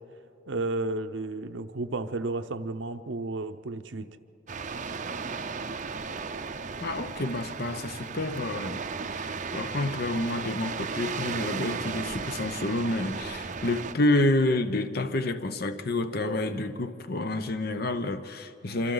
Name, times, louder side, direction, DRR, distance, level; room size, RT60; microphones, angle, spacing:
voice 1, 0.5-4.1, right 2 dB, 75° right, 0.8 m, -32 dB
sound 1, 4.5-13.9, right 5 dB, 40° right, 0.6 m, -35 dB
voice 2, 6.8-8.8 9.1-18.9, left 2 dB, 55° left, 0.9 m, -29 dB
26.5 x 26.0 x 4.0 m
head